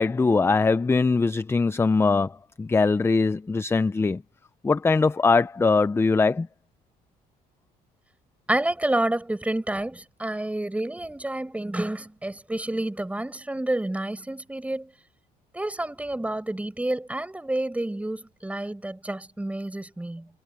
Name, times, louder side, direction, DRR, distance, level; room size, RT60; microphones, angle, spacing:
voice 1, 0.0-4.2 4.6-6.5, left 4 dB, 15° left, 0.5 m, -21 dB
voice 2, 8.5-14.9 15.5-20.3, right 1 dB, 10° right, 5.7 m, -29 dB
cardioid pair, 110°, 17 cm